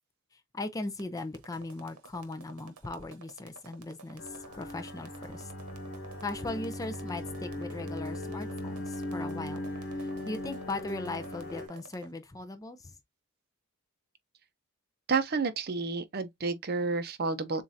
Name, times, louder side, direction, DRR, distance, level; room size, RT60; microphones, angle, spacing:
voice 1, 0.3-5.5 6.2-9.6 10.0-12.9, left 2 dB, 15° left, 0.4 m, -39 dB
sound 1, 0.8-12.1, right 4 dB, 80° right, 1.0 m, -51 dB
sound 2, 4.2-11.7, left 1 dB, 55° left, 1.9 m, -39 dB
voice 2, 15.1-17.6, right 4 dB, 45° right, 0.6 m, -30 dB
7.2 x 2.5 x 2.6 m
head